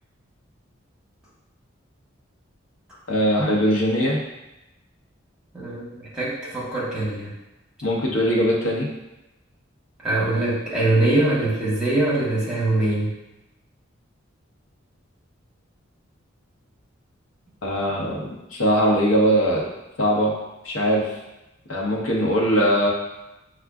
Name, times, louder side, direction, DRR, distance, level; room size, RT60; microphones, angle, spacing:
voice 1, 3.1-4.2 7.8-8.9 17.6-19.6 20.0-20.3 20.6-21.1 21.7-22.9, equal, 80° left, -2 dB, 0.9 m, -21 dB
voice 2, 5.5-7.3 10.0-13.1, right 2 dB, 5° right, -8 dB, 1.2 m, -23 dB
6.1 x 2.3 x 2.3 m, 0.96 s
head